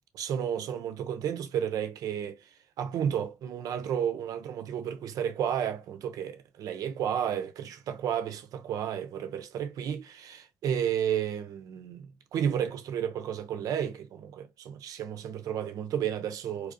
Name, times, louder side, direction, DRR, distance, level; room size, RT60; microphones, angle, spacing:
voice 1, 0.1-2.4 2.8-16.7, right 9 dB, 70° right, 0.6 m, -32 dB
4.3 x 2.5 x 2.6 m
hypercardioid pair, 50°, 6 cm